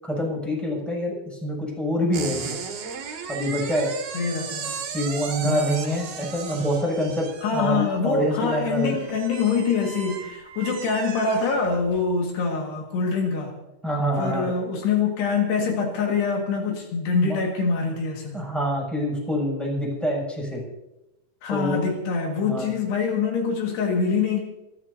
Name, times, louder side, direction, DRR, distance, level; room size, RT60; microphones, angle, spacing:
voice 1, 0.0-2.5 3.3-3.9 4.9-8.9 13.8-14.5 17.1-17.4 18.3-20.6 21.5-21.8 22.3-22.7, equal, ahead, -2 dB, 6.5 m, -26 dB
sound 1, 2.1-12.1, right 6 dB, 65° right, 3.6 m, -36 dB
voice 2, 4.1-4.8 5.4-5.9 7.4-13.5 14.2-18.4 21.4-24.4, left 5 dB, 75° left, 1 dB, 4.1 m, -25 dB
27.5 x 14.0 x 2.8 m, 0.92 s
omnidirectional pair, 4.8 m